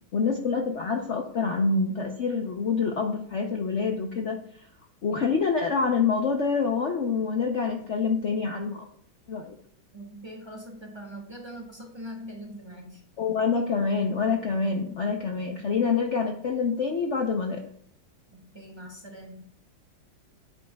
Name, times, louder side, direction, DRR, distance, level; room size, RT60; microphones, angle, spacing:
voice 1, 0.1-4.4 5.0-8.9 9.3-9.6 13.2-17.6, left 5 dB, 80° left, 3 dB, 0.6 m, -26 dB
voice 2, 9.9-13.0 18.3-19.5, equal, 15° right, -1 dB, 1.1 m, -42 dB
9.3 x 9.0 x 2.3 m, 0.64 s
omnidirectional pair, 2.2 m